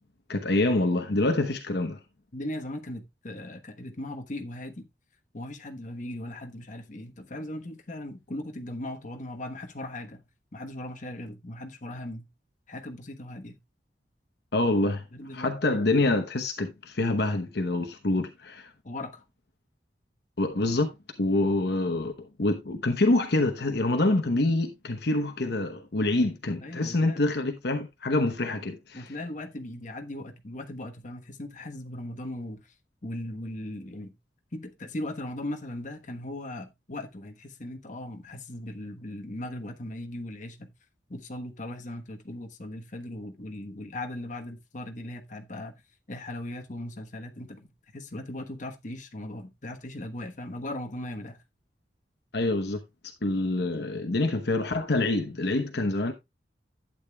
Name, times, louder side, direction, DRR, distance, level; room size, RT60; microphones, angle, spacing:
voice 1, 0.3-2.0 14.5-15.1 15.3-18.7 20.4-20.9 21.2-22.1 22.4-29.1 52.3-52.8 53.2-56.1, left 2 dB, 65° left, 1.0 m, -26 dB
voice 2, 2.3-4.8 5.3-10.2 10.5-12.3 12.7-13.6 15.1-15.5 18.8-19.2 26.6-27.2 28.9-32.6 33.0-34.1 34.5-40.7 41.1-45.7 46.1-47.7 47.9-51.4, left 1 dB, 45° left, 1.2 m, -38 dB
11.5 x 8.7 x 2.3 m
head